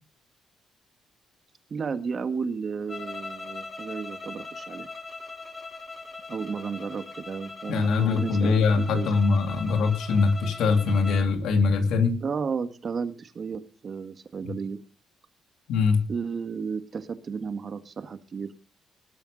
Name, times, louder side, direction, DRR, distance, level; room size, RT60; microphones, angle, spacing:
voice 1, 1.7-4.9 6.3-9.1 12.2-14.8 16.1-18.5, right 5 dB, 45° right, 10 dB, 1.8 m, -33 dB
sound 1, 2.9-11.3, left 3 dB, 30° left, 1.9 m, -40 dB
voice 2, 7.7-12.2 14.4-14.5 15.7-16.0, left 4 dB, 80° left, 5 dB, 2.8 m, -23 dB
19.5 x 7.0 x 5.2 m, 0.34 s
cardioid pair, 90°, 0 cm